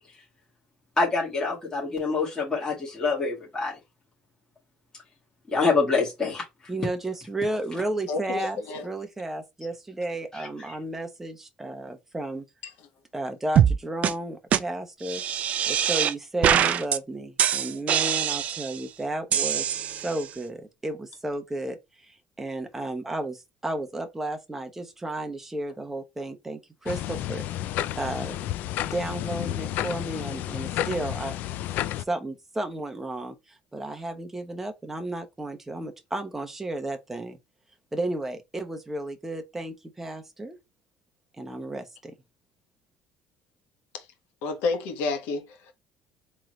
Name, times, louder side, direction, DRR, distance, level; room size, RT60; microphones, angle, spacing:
voice 1, 1.0-3.8 5.5-6.5 10.3-10.8, left 4 dB, 20° left, 2.0 m, -26 dB
voice 2, 6.7-12.4 13.1-15.2 15.7-19.7 20.0-21.8 22.1-28.3 28.8-31.4 32.1-33.4 33.7-37.4 37.9-40.6 41.4-42.1, right 1 dB, 10° right, 0.8 m, -33 dB
voice 3, 8.1-8.9 12.6-12.7 44.4-45.7, left 3 dB, 85° left, 1.3 m, -30 dB
sound 1, 13.6-13.8 14.0-14.1 14.5-14.6 15.0-16.1 16.4-17.0 17.4-18.8 19.3-20.3, right 9 dB, 45° right, 0.4 m, -23 dB
sound 2, 26.9-32.0, left 13 dB, 65° left, 0.3 m, -31 dB
3.8 x 3.1 x 3.0 m
cardioid pair, 140°, 3 cm